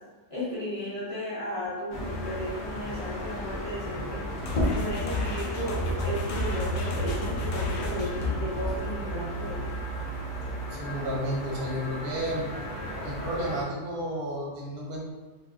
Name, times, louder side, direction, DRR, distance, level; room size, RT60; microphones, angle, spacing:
voice 1, 0.3-4.2 4.7-9.8, equal, 30° left, -9 dB, 0.8 m, -34 dB
sound 1, 1.9-13.6, left 1 dB, 55° left, 0.5 m, -34 dB
sound 2, 4.4-8.2, left 1 dB, 75° left, 1.0 m, -32 dB
sound 3, 5.7-10.7, right 8 dB, 90° right, 1.1 m, -37 dB
voice 2, 10.7-12.5 13.0-15.0, equal, 55° right, -3 dB, 0.7 m, -32 dB
2.9 x 2.8 x 2.4 m, 1.3 s
omnidirectional pair, 1.5 m